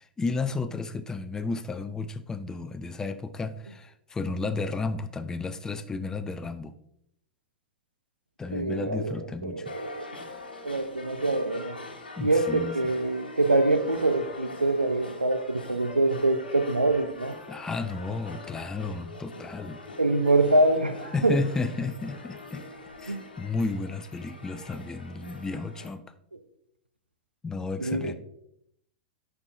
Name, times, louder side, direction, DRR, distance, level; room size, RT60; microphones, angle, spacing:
voice 1, 0.0-6.7 8.4-9.8 12.2-12.8 17.5-19.8 21.1-22.7 23.0-26.0 27.4-28.1, left 3 dB, 10° left, 10 dB, 0.5 m, -32 dB
voice 2, 8.5-9.1 9.4-10.1 10.6-11.8 12.2-17.4 20.0-21.4 23.1-23.2 27.8-28.1, right 2 dB, 85° right, 10 dB, 0.6 m, -25 dB
sound 1, 9.6-25.9, left 2 dB, 80° left, 1.2 m, -43 dB
10.5 x 4.4 x 2.6 m, 0.74 s
figure-of-eight pair, 95°, 5 cm